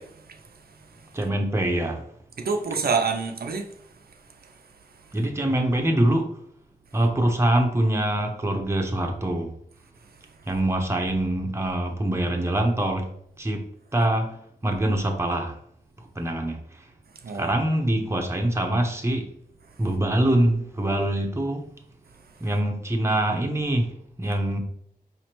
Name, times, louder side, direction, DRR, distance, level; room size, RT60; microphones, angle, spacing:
voice 1, 0.0-1.1 2.4-3.7 4.4-4.5 4.9-5.0 17.2-17.5, right 5 dB, 70° right, 0.5 m, -29 dB
voice 2, 1.1-2.0 5.1-6.4 6.9-9.5 10.5-13.1 13.4-15.6 16.0-16.9 17.3-19.3 19.8-21.7 22.4-24.6, right 1 dB, 15° right, 0.7 m, -24 dB
4.9 x 3.1 x 3.0 m
wide cardioid pair, 95°, 16 cm